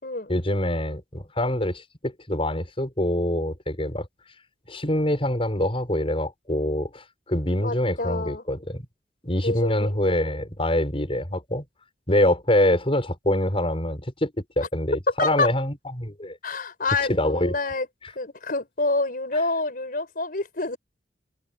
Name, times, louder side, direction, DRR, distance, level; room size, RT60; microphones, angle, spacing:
voice 1, 0.3-4.1 4.7-8.9 9.2-11.6 12.1-16.4 17.1-17.5, left 1 dB, 30° left, 6.5 m, -25 dB
voice 2, 7.5-8.4 9.4-10.0 15.2-15.5 16.4-17.9 18.1-20.8, left 3 dB, 55° left, 4.9 m, -27 dB
head